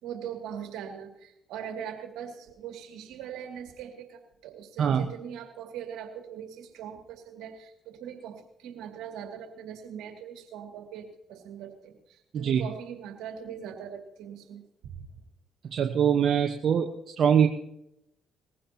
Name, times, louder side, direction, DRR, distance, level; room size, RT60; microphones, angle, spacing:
voice 1, 0.0-15.1, right 8 dB, 80° right, 4 dB, 2.4 m, -41 dB
voice 2, 12.3-12.6 15.7-17.5, right 8 dB, 65° right, 4 dB, 1.1 m, -23 dB
20.5 x 15.5 x 2.9 m, 0.81 s
supercardioid pair, 55°, 0 cm